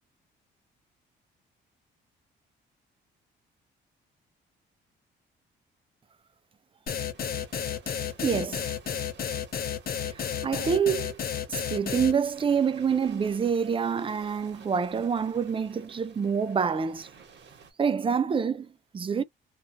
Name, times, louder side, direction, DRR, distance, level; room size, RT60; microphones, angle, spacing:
sound 1, 6.9-12.1, left 8 dB, 50° left, 0.7 m, -31 dB
sound 2, 7.1-17.7, right 6 dB, 60° right, 1.1 m, -53 dB
voice 1, 8.2-8.7 10.1-11.2 11.5-17.1 17.8-19.2, right 6 dB, 25° right, 0.4 m, -27 dB
2.5 x 2.4 x 2.5 m
cardioid pair, 90°, 20 cm